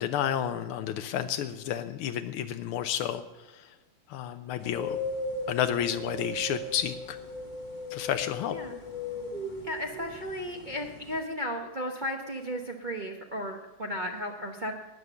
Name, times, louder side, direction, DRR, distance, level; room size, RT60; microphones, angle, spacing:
voice 1, 0.0-3.2 4.1-5.0 5.5-7.2 7.9-8.5, left 10 dB, 85° left, 9 dB, 1.5 m, -30 dB
sound 1, 4.6-11.2, left 1 dB, 25° left, 1.2 m, -37 dB
voice 2, 9.6-14.7, equal, 35° right, 2 dB, 0.7 m, -35 dB
13.0 x 9.4 x 6.8 m, 1.2 s
omnidirectional pair, 2.3 m